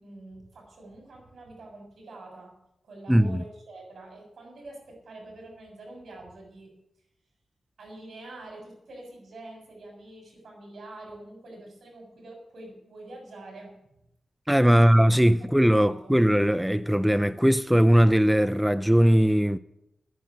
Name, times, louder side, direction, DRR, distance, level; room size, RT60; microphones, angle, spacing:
voice 1, 0.0-2.5 2.8-6.8 7.8-13.7 14.6-14.9 15.4-15.5 15.7-16.1, right 2 dB, 75° right, 6.9 m, -46 dB
voice 2, 3.1-3.4 14.5-19.6, equal, 5° right, 0.5 m, -20 dB
11.0 x 10.0 x 9.6 m
wide cardioid pair, 95°, 0 cm